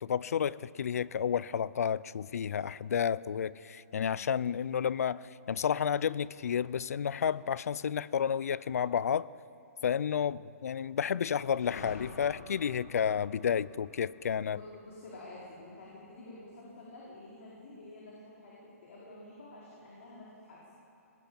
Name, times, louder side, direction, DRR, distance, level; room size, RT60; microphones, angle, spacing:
voice 1, 0.0-9.3 9.8-14.6, left 8 dB, 70° left, 20 dB, 0.5 m, -31 dB
sound 1, 11.6-16.1, left 3 dB, 85° left, 2.5 m, -50 dB
voice 2, 14.3-20.6, left 2 dB, 55° left, -5 dB, 4.7 m, -49 dB
19.5 x 18.5 x 8.8 m, 2.9 s
hypercardioid pair, 165°, 8 cm